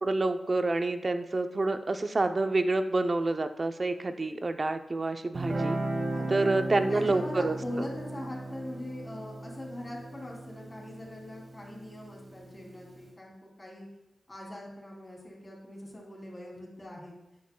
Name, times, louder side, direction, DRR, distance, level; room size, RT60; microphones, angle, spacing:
voice 1, 0.0-5.8 6.3-7.6, right 2 dB, 40° right, 8 dB, 0.5 m, -28 dB
Guitar, 5.3-12.5, right 2 dB, 55° right, 1.4 m, -36 dB
voice 2, 6.1-6.5 6.9-13.3 13.6-13.9 14.3-17.1, left 1 dB, 25° left, -3 dB, 2.9 m, -42 dB
9.7 x 9.3 x 2.2 m, 0.90 s
wide cardioid pair, 95°, 0 cm